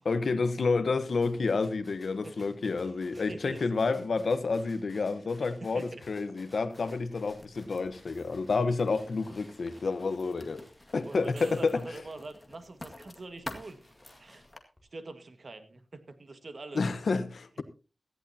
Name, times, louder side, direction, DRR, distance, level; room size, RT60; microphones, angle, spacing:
voice 1, 0.0-10.7 10.9-11.8 16.7-17.6, left 4 dB, 75° left, 1.1 m, -29 dB
sound 1, 1.1-12.8 13.2-14.8, left 1 dB, 5° left, 4.8 m, -60 dB
voice 2, 3.1-3.7 5.4-6.0 11.1-13.8 14.2-14.4 14.9-16.8, right 2 dB, 55° right, 1.7 m, -44 dB
Writing, 6.7-14.6, left 2 dB, 25° left, 2.0 m, -49 dB
sound 2, 11.2-12.1 16.8-16.9, right 4 dB, 80° right, 2.1 m, -53 dB
17.5 x 14.5 x 2.8 m
wide cardioid pair, 90°, 0 cm